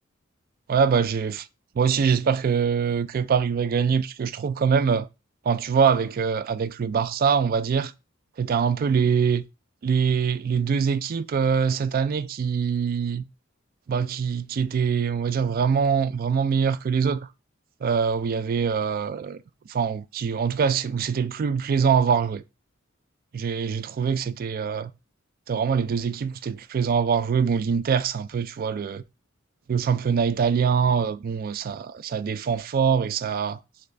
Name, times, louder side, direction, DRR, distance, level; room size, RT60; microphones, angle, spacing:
voice 1, 0.7-1.5 1.8-5.1 5.4-7.9 8.4-9.4 9.8-13.3 13.9-17.3 17.8-19.4 19.7-22.4 23.3-24.9 25.5-29.0 29.7-33.6, right 6 dB, 45° right, 0.3 m, -24 dB
3.9 x 3.1 x 3.3 m
head